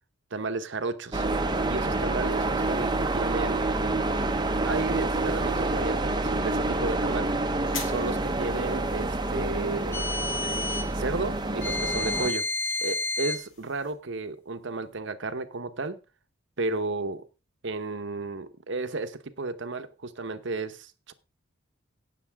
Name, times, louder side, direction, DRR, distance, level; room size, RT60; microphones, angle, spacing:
voice 1, 0.3-1.2 1.7-3.7 4.6-7.3 7.8-10.1 10.9-12.5 12.8-16.0 16.6-17.3 17.6-21.1, right 3 dB, 60° right, 1.0 m, -33 dB
sound 1, 1.1-12.3, right 2 dB, 20° right, 0.9 m, -28 dB
sound 2, 7.6-13.9, left 5 dB, 70° left, 3.0 m, -46 dB
sound 3, 9.9-10.9 11.6-13.5, left 2 dB, 10° left, 0.9 m, -30 dB
17.5 x 6.9 x 3.5 m
head